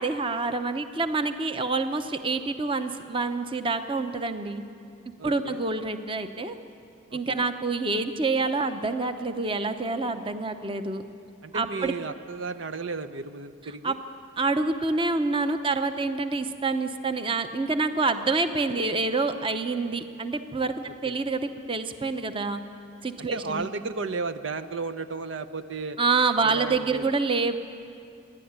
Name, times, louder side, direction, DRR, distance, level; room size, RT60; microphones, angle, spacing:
voice 1, 0.0-4.6 5.2-6.6 7.1-11.0 11.5-11.9 13.8-14.0 14.4-22.6 23.0-23.7 26.0-27.6, right 3 dB, 25° right, 8 dB, 0.8 m, -27 dB
voice 2, 5.2-5.6 7.1-7.5 11.4-14.0 23.2-26.0 26.4-27.0, right 4 dB, 75° right, 10 dB, 0.7 m, -34 dB
26.5 x 11.0 x 9.5 m, 2.4 s
head